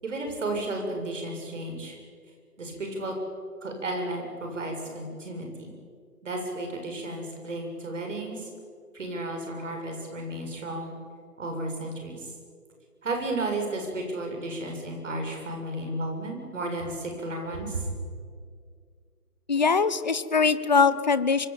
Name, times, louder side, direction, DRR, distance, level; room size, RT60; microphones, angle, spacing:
voice 1, 0.0-2.0 2.6-3.1 3.6-5.7 6.2-8.5 8.9-10.9 11.4-12.3 13.0-17.9, right 2 dB, 50° right, 3 dB, 7.6 m, -33 dB
voice 2, 19.5-21.5, left 5 dB, 30° left, 14 dB, 0.8 m, -22 dB
25.0 x 24.0 x 8.9 m, 2.1 s
figure-of-eight pair, 165°, 46 cm